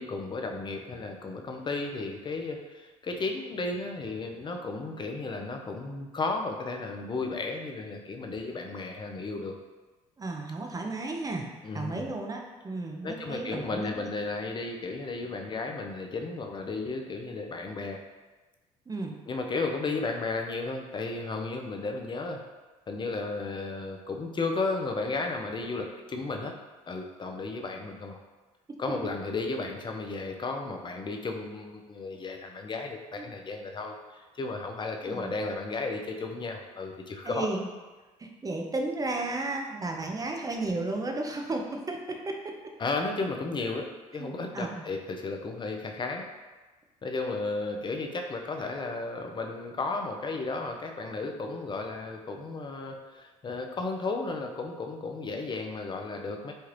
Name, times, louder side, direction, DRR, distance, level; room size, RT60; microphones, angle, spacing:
voice 1, 0.0-9.5 11.6-12.1 13.0-18.0 19.3-22.4 22.9-26.5 26.9-28.2 28.8-37.5 42.8-43.9 44.1-46.3 47.0-56.5, left 3 dB, 30° left, 3 dB, 0.5 m, -34 dB
voice 2, 10.2-11.5 11.7-14.1 18.9-19.2 33.2-33.3 35.0-35.3 37.2-37.7 38.2-42.4 44.2-44.8, right 2 dB, 20° right, 2 dB, 0.5 m, -33 dB
3.2 x 2.3 x 3.0 m, 1.2 s
hypercardioid pair, 65°, 17 cm